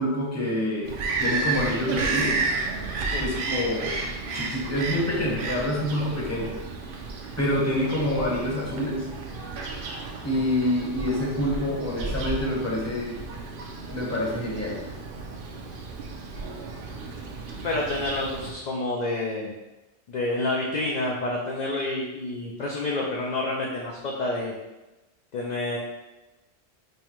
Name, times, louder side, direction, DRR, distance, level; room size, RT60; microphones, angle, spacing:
voice 1, 0.0-2.4 3.2-4.0 4.3-6.5 7.4-9.0 10.2-13.2 13.9-14.8, left 1 dB, 15° left, -4 dB, 0.7 m, -27 dB
Bird vocalization bird call bird song, 0.8-18.5, right 3 dB, 60° right, 0.6 m, -32 dB
voice 2, 17.6-19.5 20.1-24.5 25.3-25.8, left 2 dB, 55° left, -2 dB, 0.5 m, -28 dB
5.4 x 2.1 x 3.0 m, 1.1 s
omnidirectional pair, 1.2 m